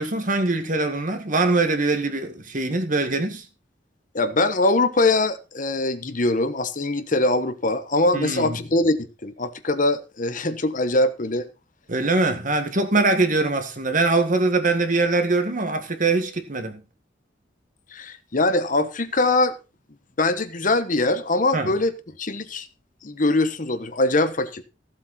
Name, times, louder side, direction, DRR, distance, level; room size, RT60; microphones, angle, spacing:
voice 1, 0.0-3.5 8.1-8.6 11.9-16.8 21.5-21.7, right 3 dB, 45° right, 1.9 m, -22 dB
voice 2, 4.1-11.5 17.9-19.6 20.2-21.9 22.2-22.7 23.0-24.6, left 2 dB, 45° left, 1.1 m, -22 dB
15.0 x 7.8 x 4.2 m
head